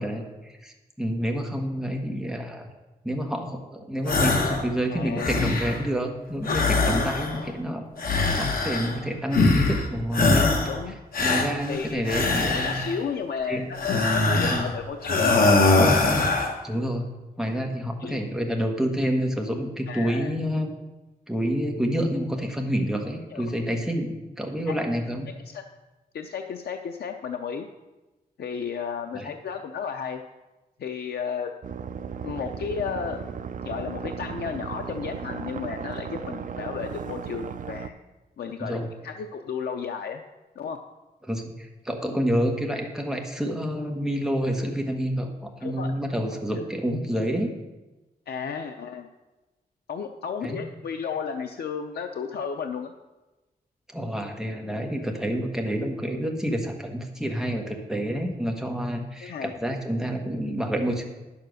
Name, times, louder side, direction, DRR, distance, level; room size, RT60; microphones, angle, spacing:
voice 1, 0.0-2.7 3.0-7.8 8.4-10.6 11.2-12.8 13.5-13.7 14.5-14.7 16.6-17.1 17.4-20.7 21.3-25.3 29.1-29.3 38.6-38.9 41.2-47.5 50.4-50.6 53.9-61.0, equal, 5° right, 2 dB, 1.4 m, -28 dB
sound 1, 4.1-4.7 5.0-5.9 6.4-7.5 8.0-9.0 9.3-9.9 10.1-10.8 11.1-13.0 13.8-14.7 15.0-16.6, left 3 dB, 65° left, 1.4 m, -22 dB
voice 2, 4.9-5.4 6.8-7.3 10.7-11.0 11.7-12.0 12.5-15.5 18.0-18.2 19.9-20.3 23.3-23.4 24.7-24.8 25.5-25.6 26.1-27.7 28.4-30.2 30.8-31.5 32.2-33.2 33.6-38.0 38.4-40.2 40.6-40.8 45.6-45.9 48.3-49.1 49.9-52.9 59.2-59.5, left 6 dB, 85° left, 5 dB, 0.6 m, -33 dB
sound 2, 31.6-37.9, right 7 dB, 55° right, 0.5 m, -35 dB
10.0 x 7.1 x 6.4 m, 1.1 s
wide cardioid pair, 140°, 16 cm